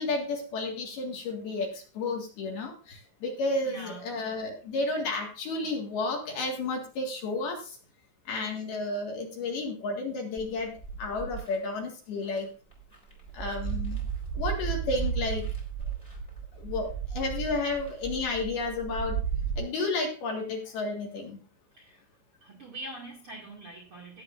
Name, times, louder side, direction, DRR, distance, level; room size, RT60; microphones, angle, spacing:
voice 1, 0.0-7.8 8.3-10.7 11.0-12.5 13.3-14.0 14.4-15.4 16.6-19.2 19.6-21.4, left 3 dB, 60° left, 1 dB, 3.3 m, -32 dB
voice 2, 3.6-4.1 21.8-22.0 22.4-24.2, right 1 dB, 40° right, -2 dB, 2.0 m, -43 dB
sound 1, 10.4-11.6 12.3-12.4 12.7-19.6, right 7 dB, 10° left, 3.8 m, -34 dB
19.0 x 8.1 x 2.5 m, 0.37 s
omnidirectional pair, 5.8 m